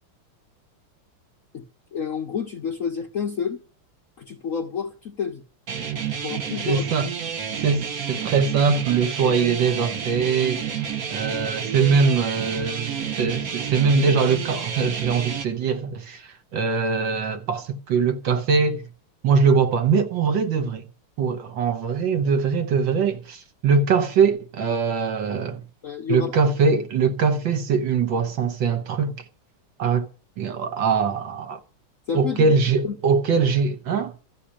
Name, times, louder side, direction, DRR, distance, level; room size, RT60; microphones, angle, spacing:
voice 1, 1.9-3.6 4.2-5.4 6.2-6.8 25.8-26.3 32.1-32.5 32.8-32.9, left 7 dB, 55° left, 0.9 m, -29 dB
sound 1, 5.7-15.4, right 7 dB, 50° right, 1.3 m, -30 dB
voice 2, 6.7-7.1 7.6-10.6 11.1-18.9 19.2-20.8 21.2-25.6 26.1-29.2 29.8-30.1 30.4-31.6 32.1-34.1, right 5 dB, 65° right, 1.8 m, -22 dB
13.5 x 6.2 x 9.9 m
omnidirectional pair, 2.3 m